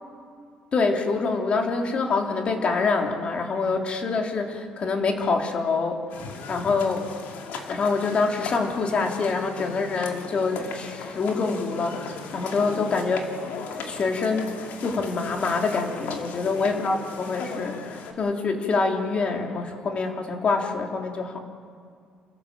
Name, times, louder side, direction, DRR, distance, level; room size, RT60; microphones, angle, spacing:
voice 1, 0.7-6.0 6.5-7.1 7.7-13.3 13.8-21.4, left 4 dB, 40° left, 3 dB, 2.9 m, -26 dB
sound 1, 6.1-18.1, left 5 dB, 75° left, 2.8 m, -37 dB
29.0 x 16.0 x 7.4 m, 2.3 s
cardioid pair, 130°, 3 cm